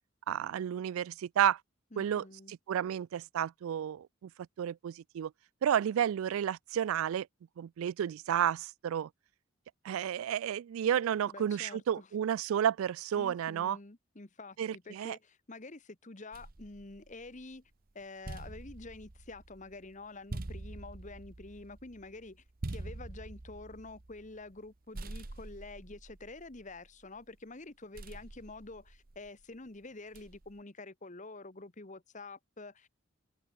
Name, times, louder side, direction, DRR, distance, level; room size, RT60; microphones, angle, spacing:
voice 1, 0.3-1.6 2.0-4.3 4.6-5.3 5.6-7.3 7.6-9.1 9.8-13.8 14.6-15.2, right 9 dB, 80° right, 0.3 m, -31 dB
voice 2, 1.9-2.5 11.3-12.1 13.2-17.6 17.9-22.4 22.7-32.9, left 2 dB, 35° left, 1.3 m, -48 dB
sound 1, 16.3-17.6 18.0-24.7 24.9-27.2 27.9-29.4 30.1-30.6, right 2 dB, 45° right, 1.0 m, -46 dB
head